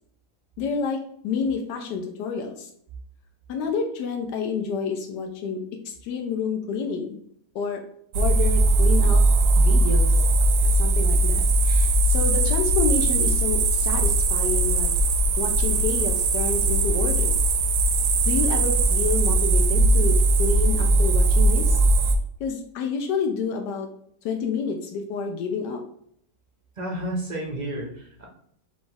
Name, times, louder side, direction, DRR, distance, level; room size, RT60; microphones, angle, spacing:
voice 1, 0.6-2.7 3.5-5.6 5.8-7.2 7.5-7.8 8.1-9.2 9.6-10.1 10.6-14.9 15.4-17.3 18.3-21.8 22.4-23.9 24.2-25.8, left 5 dB, 85° left, 3 dB, 1.2 m, -29 dB
sound 1, 8.1-22.2, right 2 dB, 75° right, 1.1 m, -20 dB
voice 2, 26.8-28.3, right 1 dB, 55° right, 0 dB, 0.4 m, -31 dB
4.9 x 2.4 x 3.8 m, 0.66 s
omnidirectional pair, 1.8 m